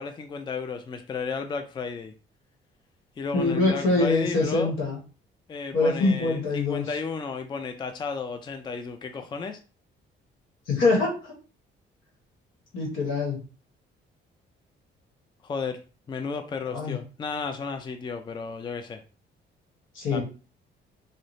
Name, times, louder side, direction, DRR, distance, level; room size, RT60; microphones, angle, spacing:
voice 1, 0.0-2.1 3.2-4.7 5.5-9.6 15.4-15.8 16.1-19.0 20.1-20.2, left 5 dB, 25° left, 0.3 m, -33 dB
voice 2, 3.3-5.0 5.7-6.9 10.7-11.3 12.7-13.4 16.7-17.0 19.9-20.2, left 3 dB, 85° left, 1.0 m, -24 dB
2.4 x 2.0 x 3.0 m
cardioid pair, 90°, 20 cm